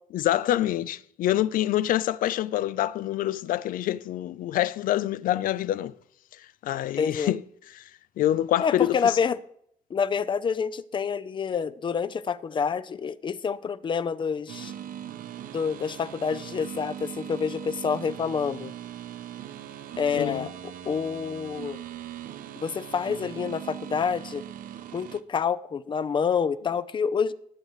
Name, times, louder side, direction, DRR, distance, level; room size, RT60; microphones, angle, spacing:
voice 1, 0.1-5.9 6.6-7.4 7.7-7.8 8.2-9.2 20.1-20.5, left 13 dB, 85° left, 0.4 m, -26 dB
voice 2, 7.0-7.3 8.6-9.4 9.9-14.7 15.5-18.7 20.0-20.5 20.9-21.8 22.6-24.4 24.9-27.3, left 6 dB, 35° left, 0.5 m, -27 dB
sound 1, 14.5-25.2, right 11 dB, 80° right, 0.8 m, -40 dB
21.0 x 8.0 x 3.1 m
cardioid pair, 135°, 14 cm